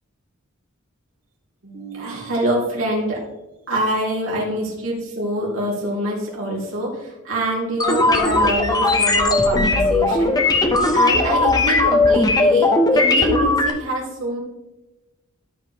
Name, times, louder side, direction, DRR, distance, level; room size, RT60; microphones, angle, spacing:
voice 1, 1.6-3.2 3.7-10.7 10.9-14.4, right 1 dB, 75° right, -4 dB, 3.0 m, -25 dB
sound 1, 7.8-13.7, left 2 dB, 20° left, 0.8 m, -17 dB
13.0 x 5.0 x 3.3 m, 1.0 s
head